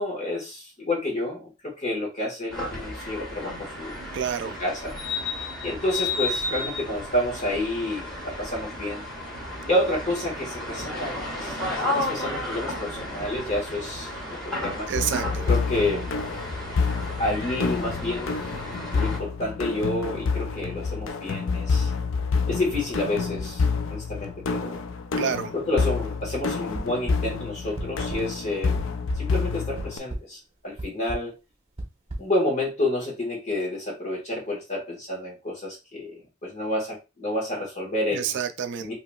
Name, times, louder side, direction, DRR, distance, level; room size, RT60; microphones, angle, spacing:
voice 1, 0.0-4.0 4.6-5.0 5.6-9.1 9.7-14.9 15.5-16.1 17.2-18.4 18.9-21.9 22.5-24.8 25.5-28.9 29.1-31.4 32.2-38.4 38.8-38.9, left 1 dB, 30° left, 1.5 m, -29 dB
sound 1, 2.5-19.2, left 2 dB, 5° left, 1.7 m, -33 dB
voice 2, 4.1-4.6 14.9-15.5 25.2-25.5 38.1-38.9, right 7 dB, 55° right, 0.3 m, -28 dB
sound 2, 14.9-30.0, left 4 dB, 65° left, 0.4 m, -28 dB
sound 3, 26.7-27.2 27.8-28.2 28.6-29.2 29.8-30.2 30.8-31.2 31.8-32.2, right 1 dB, 30° right, 1.0 m, -31 dB
4.7 x 2.9 x 2.3 m
head